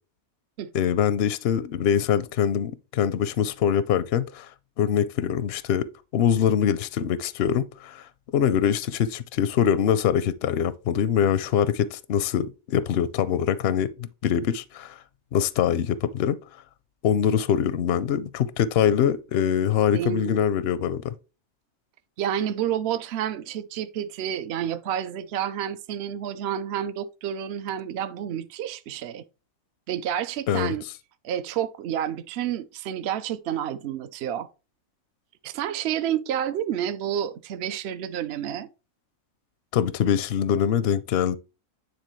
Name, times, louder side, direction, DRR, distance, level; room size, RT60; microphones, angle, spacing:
voice 1, 0.7-4.5 4.8-5.9 6.1-15.0 15.3-16.4 17.0-21.1 30.5-30.7 39.7-41.4, left 9 dB, 65° left, 0.6 m, -23 dB
voice 2, 19.9-20.4 22.2-29.2 29.9-30.8 31.2-34.5 35.4-38.7, right 10 dB, 65° right, 0.7 m, -29 dB
9.7 x 4.0 x 3.1 m
omnidirectional pair, 1.5 m